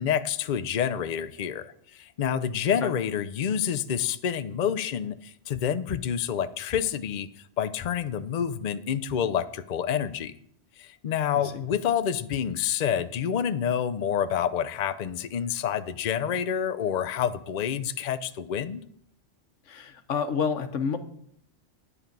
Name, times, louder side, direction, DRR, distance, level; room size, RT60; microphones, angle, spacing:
voice 1, 0.0-1.7 2.0-7.3 7.6-10.3 10.8-18.8, left 8 dB, 50° left, 12 dB, 0.6 m, -28 dB
voice 2, 19.7-21.0, left 6 dB, 90° left, 9 dB, 1.3 m, -28 dB
10.0 x 9.5 x 5.3 m, 0.67 s
omnidirectional pair, 1.2 m